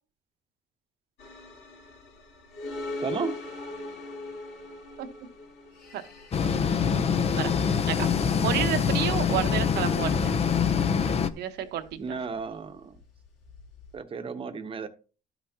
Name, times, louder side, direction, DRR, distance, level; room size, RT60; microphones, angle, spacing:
sound 1, 1.2-14.0, left 2 dB, 85° left, 3.4 m, -42 dB
voice 1, 3.0-3.4 12.0-13.0 13.9-14.9, right 5 dB, 30° right, 1.0 m, -33 dB
sound 2, 6.3-11.3, left 6 dB, 35° left, 0.6 m, -25 dB
voice 2, 6.7-7.5 7.9-8.1 8.4-10.3 11.4-12.2 12.5-12.6, right 11 dB, 75° right, 1.1 m, -31 dB
12.5 x 5.9 x 2.8 m
cardioid pair, 110°, 17 cm